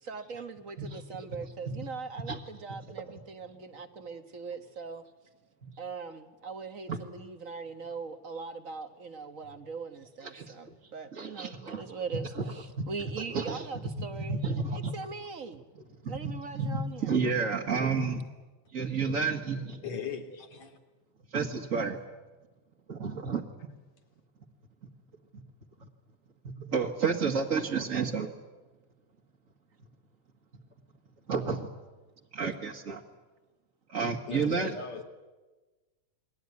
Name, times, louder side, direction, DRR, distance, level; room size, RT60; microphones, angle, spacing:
voice 1, 0.0-5.0 5.8-15.7 16.1-17.2, right 5 dB, 60° right, 8 dB, 0.8 m, -41 dB
voice 2, 10.2-10.5 11.1-12.0 12.3-12.4 12.8-12.9 13.3-13.7 14.0-14.9 16.0-18.2 18.7-19.8 21.3-22.0 22.9-23.4 25.3-25.4 26.4-28.3 31.3-31.7 32.3-33.0 33.9-34.7, right 5 dB, 35° right, -1 dB, 1.5 m, -31 dB
voice 3, 19.8-20.8 34.3-35.0, left 6 dB, 65° left, 5 dB, 3.9 m, -38 dB
29.0 x 21.5 x 9.5 m, 1.2 s
omnidirectional pair, 3.4 m